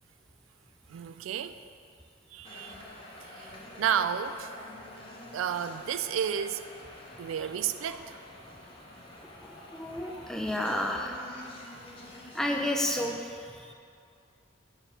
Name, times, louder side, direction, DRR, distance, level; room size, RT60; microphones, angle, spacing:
voice 1, 0.9-1.6 2.3-2.8 3.2-3.5 3.8-4.5 5.3-6.6 7.2-8.2, right 8 dB, 90° right, 11 dB, 0.3 m, -31 dB
sound 1, 2.4-13.1, left 1 dB, 30° left, 0.8 m, -48 dB
voice 2, 9.4-11.2 12.3-13.4, left 1 dB, 5° left, 1 dB, 0.4 m, -31 dB
7.0 x 3.4 x 5.6 m, 2.4 s
head